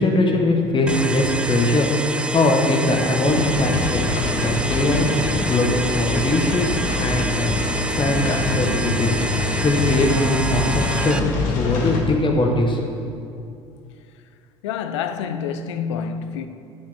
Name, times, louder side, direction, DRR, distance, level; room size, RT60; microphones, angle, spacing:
voice 1, 0.0-1.9 2.3-4.1 4.4-5.1 5.5-6.7 7.0-7.5 7.9-9.2 9.6-11.2 11.5-12.8, left 2 dB, 35° left, 1.4 m, -21 dB
sound 1, 0.9-11.2, right 2 dB, 5° right, 0.4 m, -27 dB
sound 2, 3.3-12.0, left 3 dB, 70° left, 1.3 m, -25 dB
voice 2, 14.6-16.5, left 7 dB, 85° left, 0.5 m, -27 dB
9.8 x 5.9 x 4.3 m
hypercardioid pair, 65°, 15 cm